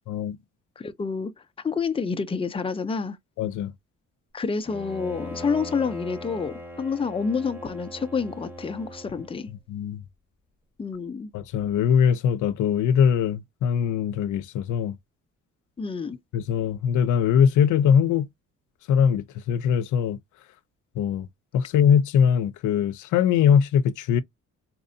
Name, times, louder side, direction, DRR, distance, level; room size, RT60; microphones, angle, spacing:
voice 1, 0.8-1.3 1.6-3.2 4.3-9.5 10.8-11.3 15.8-16.2, left 5 dB, 20° left, 0.6 m, -28 dB
voice 2, 3.4-3.7 9.7-10.0 11.3-15.0 16.3-18.3 18.9-20.2 21.0-21.3 21.5-24.2, left 8 dB, 80° left, 0.6 m, -21 dB
Bowed string instrument, 4.7-9.5, equal, 5° right, 1.3 m, -40 dB
4.2 x 2.6 x 2.6 m
cardioid pair, 90°, 30 cm